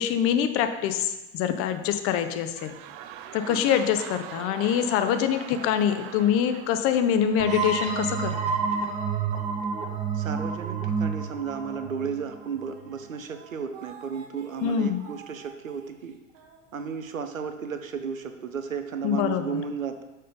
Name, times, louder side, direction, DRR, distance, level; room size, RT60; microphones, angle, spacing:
voice 1, 0.0-2.8 3.3-8.5 14.6-15.0 19.0-19.6, left 9 dB, 35° left, 9 dB, 0.6 m, -25 dB
sound 1, 2.2-8.5 9.1-9.2, right 10 dB, 35° right, 0.4 m, -43 dB
sound 2, 7.4-12.9, right 5 dB, 20° right, 0.8 m, -29 dB
sound 3, 9.5-10.9 11.3-11.5 12.1-12.2 12.4-17.2, right 6 dB, 50° right, 1.2 m, -50 dB
voice 2, 10.1-16.2 16.7-20.0, right 6 dB, 85° right, 8 dB, 0.7 m, -34 dB
6.4 x 4.4 x 5.1 m, 1.0 s
figure-of-eight pair, 85°, 39 cm